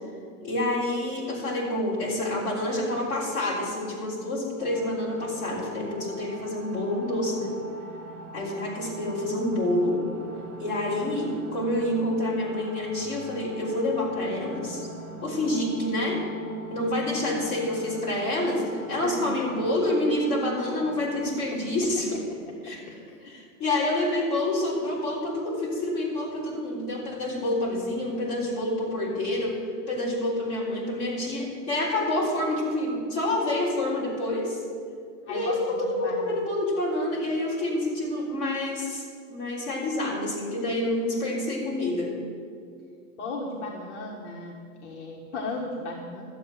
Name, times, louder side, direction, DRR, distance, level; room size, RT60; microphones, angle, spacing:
voice 1, 0.4-7.5 8.3-10.0 10.6-14.9 15.2-16.2 16.7-22.1 22.6-22.8 23.2-29.6 29.9-34.6 35.3-42.2, left 1 dB, 15° left, -8 dB, 3.6 m, -28 dB
sound 1, 4.6-21.3, right 2 dB, 70° right, 2.2 m, -43 dB
voice 2, 21.2-21.6 22.6-23.2 35.3-36.3 43.2-46.2, left 2 dB, 50° left, -2 dB, 1.6 m, -36 dB
13.0 x 8.1 x 7.8 m, 2.2 s
supercardioid pair, 180°, 45 cm